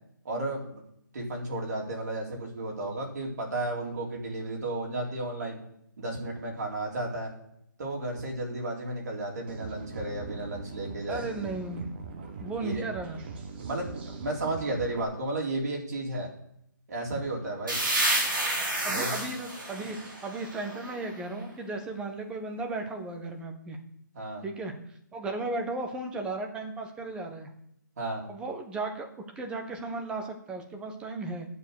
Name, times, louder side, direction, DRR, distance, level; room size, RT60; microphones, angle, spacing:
voice 1, 0.2-0.8 1.1-5.6 6.0-7.3 7.8-11.2 12.6-12.9 13.6-13.9 14.2-16.3 16.9-17.8 18.9-19.1 24.1-24.4 28.0-28.2, right 2 dB, 55° right, -1 dB, 3.8 m, -33 dB
sound 1, 9.5-15.0, right 4 dB, 30° right, 1.5 m, -41 dB
voice 2, 11.1-11.9 12.4-13.2 18.8-23.8 24.4-24.7 25.1-27.5 28.3-29.1 29.4-31.5, right 3 dB, 10° right, 4 dB, 1.2 m, -35 dB
sound 2, 17.7-21.3, right 1 dB, 80° right, 4.4 m, -30 dB
8.3 x 7.2 x 6.7 m, 0.75 s
figure-of-eight pair, 150°, 11 cm